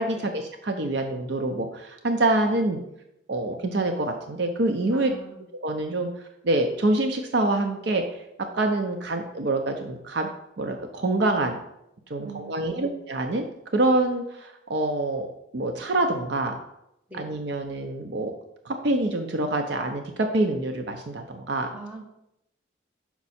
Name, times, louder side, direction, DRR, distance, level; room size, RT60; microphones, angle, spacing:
voice 1, 0.0-2.8 3.3-5.1 5.6-6.1 6.4-8.2 8.5-10.3 10.6-11.6 12.1-13.5 13.7-15.3 15.5-16.5 17.1-18.3 18.6-21.7, right 2 dB, 60° right, 4 dB, 0.6 m, -26 dB
voice 2, 4.9-5.4 12.2-12.9 17.1-17.2 21.7-22.0, right 2 dB, 10° right, -4 dB, 1.4 m, -42 dB
5.9 x 5.2 x 4.2 m, 0.82 s
head